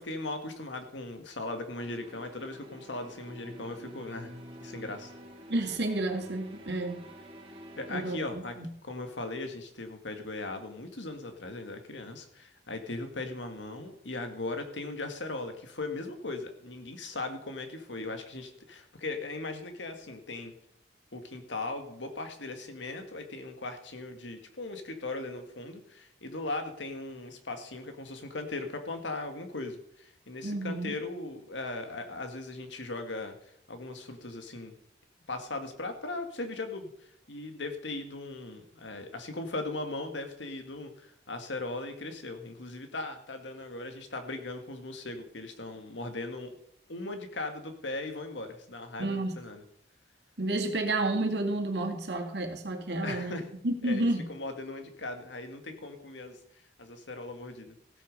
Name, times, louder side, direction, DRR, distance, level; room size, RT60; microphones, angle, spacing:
voice 1, 0.0-4.3 4.6-5.1 7.8-8.5 8.8-20.5 21.1-34.7 35.3-46.6 46.9-49.6 53.0-53.4 53.8-56.4 56.8-57.8, left 2 dB, 90° left, 6 dB, 1.9 m, -38 dB
sound 1, 1.8-8.2, equal, 30° right, 1.9 m, -48 dB
voice 2, 5.5-7.0 7.9-8.7 30.4-31.0 49.0-49.4 50.4-54.3, right 2 dB, 70° right, 3 dB, 2.1 m, -31 dB
15.5 x 8.3 x 5.3 m, 0.73 s
head